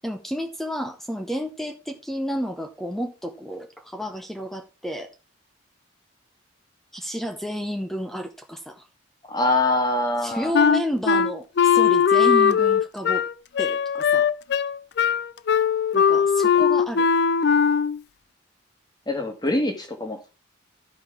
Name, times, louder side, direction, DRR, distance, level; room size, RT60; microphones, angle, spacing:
voice 1, 0.0-5.1 6.9-8.9 10.2-13.3 13.6-14.3 15.9-17.1, equal, ahead, 0.7 m, -31 dB
voice 2, 9.3-10.5 19.1-20.3, left 2 dB, 20° left, 1.5 m, -24 dB
Wind instrument woodwind instrument, 10.5-18.0, left 7 dB, 55° left, 0.4 m, -19 dB
13.0 x 5.4 x 3.5 m
head